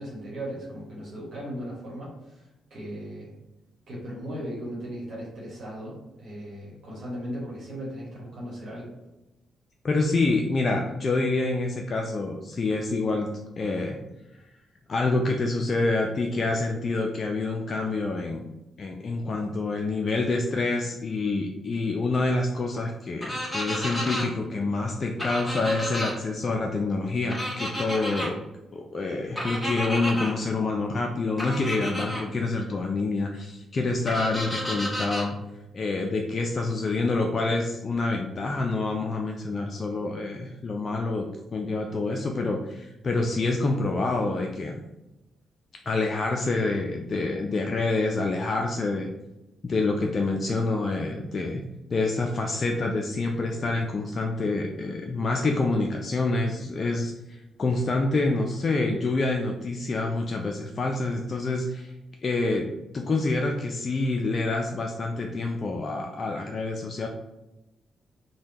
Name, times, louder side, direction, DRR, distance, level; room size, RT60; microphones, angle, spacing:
voice 1, 0.0-3.3 3.9-8.9, equal, 60° right, -5 dB, 1.1 m, -37 dB
voice 2, 9.8-13.3 13.6-14.0 14.9-18.4 18.8-28.4 28.7-35.4 35.7-44.8 45.9-49.1 49.6-51.6 51.9-61.9 62.2-62.7 62.9-67.1, left 3 dB, 45° left, 2 dB, 0.3 m, -27 dB
sound 1, 23.2-24.3 25.2-26.1 27.3-28.3 29.4-30.3 31.4-32.2 34.1-35.3, equal, 5° left, 1.3 m, -31 dB
3.4 x 2.2 x 2.7 m, 0.98 s
hypercardioid pair, 40°, 0 cm